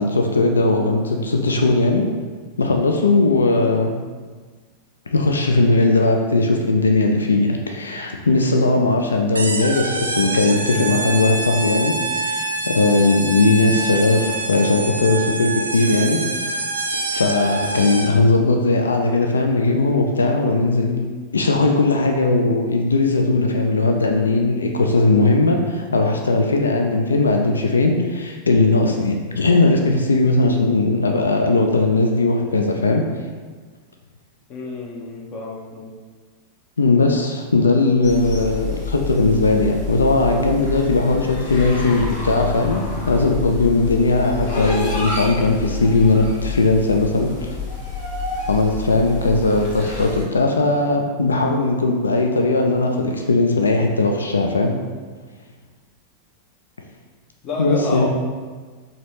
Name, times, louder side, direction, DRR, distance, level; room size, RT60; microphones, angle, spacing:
voice 1, 0.0-2.1 2.6-3.9 5.1-16.2 17.1-21.0 21.3-33.0 36.8-47.6 48.5-54.8 57.6-58.1, left 3 dB, 75° left, 3 dB, 0.3 m, -18 dB
sound 1, 9.3-18.3, right 2 dB, 75° right, 0.4 m, -26 dB
voice 2, 34.5-35.9 57.4-58.1, left 3 dB, 35° left, -1 dB, 0.6 m, -29 dB
sound 2, 38.0-50.2, left 4 dB, 55° left, 1.1 m, -29 dB
4.0 x 2.7 x 3.1 m, 1.5 s
figure-of-eight pair, 90°, 0 cm